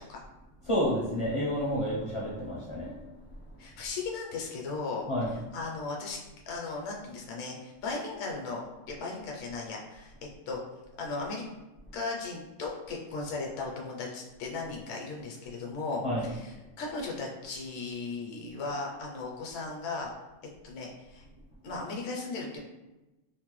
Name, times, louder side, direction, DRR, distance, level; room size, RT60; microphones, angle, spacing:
voice 1, 0.6-2.9 5.1-5.4 16.0-16.3, equal, 40° left, -7 dB, 0.4 m, -30 dB
voice 2, 3.6-5.0 5.5-6.2 6.5-8.6 8.9-10.1 10.5-10.6 11.0-11.4 11.9-20.1 20.6-21.3 21.6-22.6, left 3 dB, 70° left, -1 dB, 0.9 m, -36 dB
3.1 x 2.1 x 3.0 m, 1.1 s
omnidirectional pair, 1.3 m